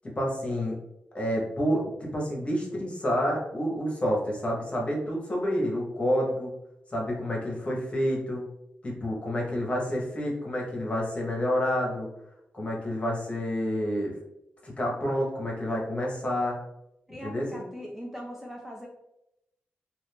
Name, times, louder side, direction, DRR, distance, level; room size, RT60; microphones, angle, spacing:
voice 1, 0.2-0.8 1.1-6.5 6.9-8.4 8.8-12.1 12.5-14.1 14.6-16.6 17.2-17.6, equal, 30° left, -2 dB, 1.1 m, -29 dB
voice 2, 17.1-18.9, equal, 5° right, -1 dB, 0.5 m, -40 dB
2.6 x 2.5 x 3.5 m, 0.83 s
cardioid pair, 80°, 4 cm